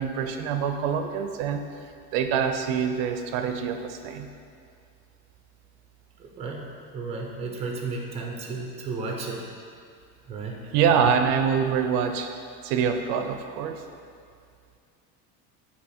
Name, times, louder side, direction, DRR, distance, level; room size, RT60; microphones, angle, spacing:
voice 1, 0.0-1.6 2.1-4.3 10.7-12.3 12.6-13.8, right 7 dB, 85° right, 6 dB, 0.6 m, -25 dB
voice 2, 6.2-6.6 6.9-9.5 10.3-10.6, right 3 dB, 20° right, 0 dB, 0.6 m, -33 dB
8.0 x 3.0 x 4.3 m, 2.3 s
cardioid pair, 175°, 31 cm